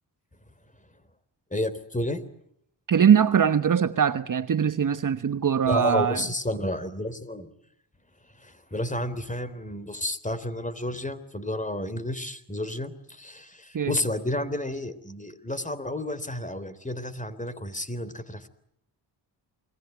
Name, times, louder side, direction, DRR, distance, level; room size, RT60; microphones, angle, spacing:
voice 1, 1.5-2.2 5.7-7.5 8.4-18.5, left 1 dB, 15° left, 3.5 m, -31 dB
voice 2, 2.9-6.3 13.7-14.0, right 8 dB, 45° right, 1.2 m, -22 dB
28.5 x 21.5 x 9.5 m
cardioid pair, 70°, 43 cm